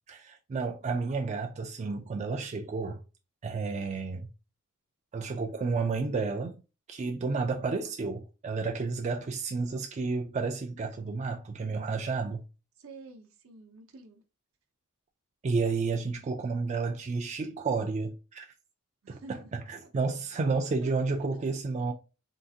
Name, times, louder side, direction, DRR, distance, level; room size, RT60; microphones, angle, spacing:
voice 1, 0.1-3.0 3.4-4.3 5.1-6.6 6.9-12.4 15.4-18.5 19.1-21.9, right 4 dB, 35° right, 0.3 m, -31 dB
voice 2, 12.8-14.2 19.0-19.5 19.8-19.9 20.8-21.2, right 3 dB, 70° right, 0.7 m, -50 dB
3.7 x 2.4 x 2.7 m
head